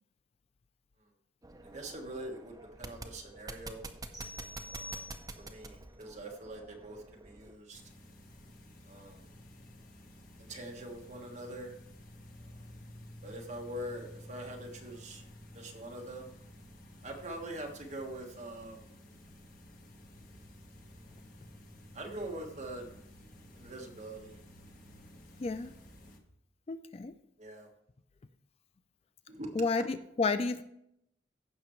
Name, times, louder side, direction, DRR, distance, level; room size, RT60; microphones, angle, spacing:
sound 1, 1.4-7.6, right 2 dB, 20° right, 0.6 m, -47 dB
voice 1, 1.6-3.9 4.7-7.8 8.9-9.3 10.4-11.7 12.4-12.5 13.2-15.2 15.5-16.3 17.0-19.0 20.8-21.0 21.9-23.0 23.5-24.4 27.4-27.7 29.3-29.6, right 1 dB, 40° right, 1 dB, 1.5 m, -44 dB
sound 2, 4.1-5.7, left 2 dB, 5° right, 2.3 m, -47 dB
sound 3, 7.7-26.2, left 1 dB, 45° left, 1.3 m, -53 dB
voice 2, 25.4-25.7 26.7-27.1 29.5-30.6, left 3 dB, 30° left, 11 dB, 0.3 m, -31 dB
15.5 x 5.9 x 3.1 m, 0.77 s
head